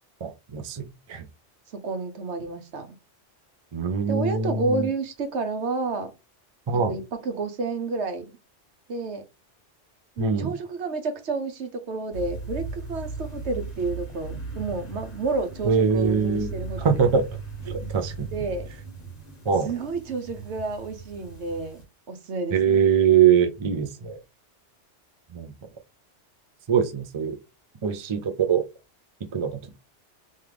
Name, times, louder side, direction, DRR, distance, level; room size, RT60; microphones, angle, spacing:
voice 1, 0.2-1.3 3.7-4.9 6.7-7.0 10.2-10.5 15.6-16.5 16.8-17.2 17.6-18.3 19.4-19.7 22.5-24.2 25.3-25.5 26.7-27.4 27.8-28.6 29.3-29.8, right 7 dB, 45° right, 0.4 m, -23 dB
voice 2, 1.7-3.0 4.1-6.1 6.7-8.3 8.9-9.2 10.2-16.9 18.3-18.7 19.6-21.8 22.1-22.8, right 3 dB, 70° right, 1.1 m, -30 dB
sound 1, 12.1-21.8, right 3 dB, 35° left, 1.5 m, -37 dB
3.6 x 3.2 x 3.4 m
omnidirectional pair, 1.2 m